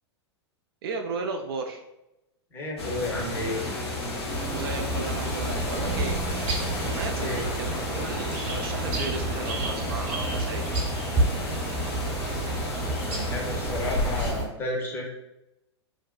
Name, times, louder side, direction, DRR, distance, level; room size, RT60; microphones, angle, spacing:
voice 1, 0.8-1.8 4.5-6.2 6.9-10.7, right 4 dB, 60° right, 4 dB, 0.4 m, -34 dB
voice 2, 2.5-3.6 7.2-7.5 13.0-15.1, left 1 dB, 15° left, -2 dB, 0.7 m, -32 dB
sound 1, 2.8-14.3, left 1 dB, 65° left, 0.7 m, -32 dB
sound 2, 3.6-8.2, right 2 dB, 85° left, 1.0 m, -43 dB
sound 3, 4.3-14.4, right 2 dB, 40° right, 1.0 m, -30 dB
2.5 x 2.1 x 2.3 m, 0.89 s
figure-of-eight pair, 100°, 15 cm